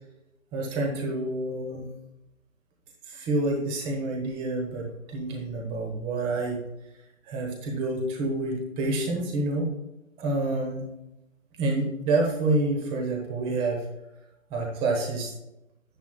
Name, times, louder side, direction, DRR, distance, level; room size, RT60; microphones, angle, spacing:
voice 1, 0.5-1.9 3.1-6.6 7.2-9.7 10.2-10.8 11.6-13.8 14.5-15.3, right 2 dB, 10° right, 0 dB, 1.2 m, -28 dB
10.0 x 9.7 x 2.3 m, 0.91 s
figure-of-eight pair, 140°, 42 cm